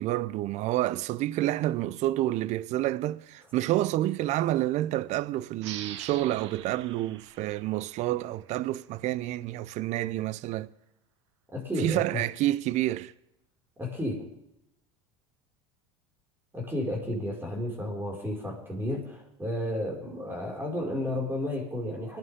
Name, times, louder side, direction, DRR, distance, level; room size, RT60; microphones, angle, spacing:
voice 1, 0.0-10.7 11.8-13.1, right 15 dB, 50° right, 0.6 m, -29 dB
sound 1, 5.6-8.8, right 10 dB, 80° right, 1.3 m, -44 dB
voice 2, 11.5-12.2 13.8-14.2 16.5-22.2, left 1 dB, 15° right, 5.5 m, -32 dB
24.0 x 11.5 x 3.7 m
hypercardioid pair, 85°, 15 cm